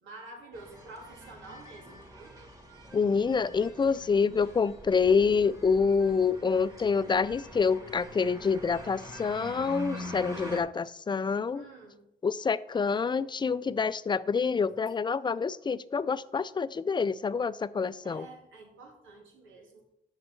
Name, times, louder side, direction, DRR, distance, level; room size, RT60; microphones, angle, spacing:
voice 1, 0.0-2.3 11.5-12.0 18.0-19.8, right 2 dB, 90° right, 2.8 m, -48 dB
sound 1, 0.5-10.6, equal, 15° right, 2.1 m, -45 dB
voice 2, 2.9-11.6 12.2-18.3, left 5 dB, 25° left, 0.4 m, -27 dB
6.8 x 6.6 x 7.1 m
cardioid pair, 90°, 20 cm